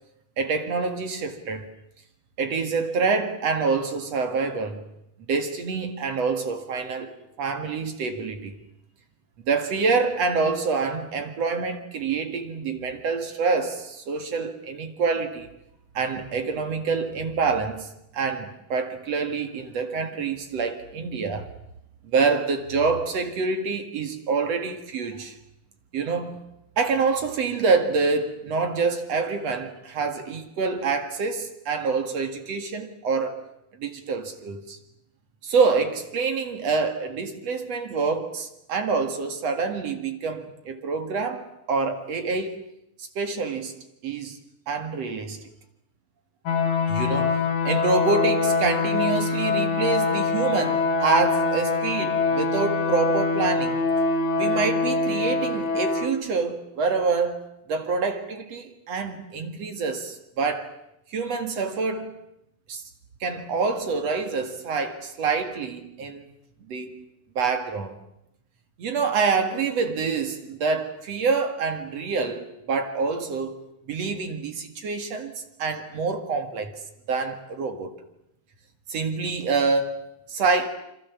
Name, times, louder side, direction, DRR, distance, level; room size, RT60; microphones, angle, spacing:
voice 1, 0.4-1.7 2.4-4.8 5.3-7.1 7.4-8.5 9.5-15.5 15.9-17.9 18.1-21.5 22.1-25.3 25.9-26.4 26.8-33.4 33.8-34.8 35.4-42.6 43.2-44.4 44.7-45.4 46.9-47.4 47.6-53.8 54.4-57.4 57.7-60.7 61.1-62.1 62.7-62.8 63.2-66.3 66.7-67.0 67.4-68.0 68.8-73.6 73.9-75.3 75.6-76.7 77.1-78.0 78.9-80.0 80.3-80.7, right 4 dB, 50° right, 2.9 m, -26 dB
sound 1, 46.5-56.1, left 4 dB, 60° left, 3.1 m, -24 dB
27.0 x 26.0 x 7.3 m
omnidirectional pair, 4.0 m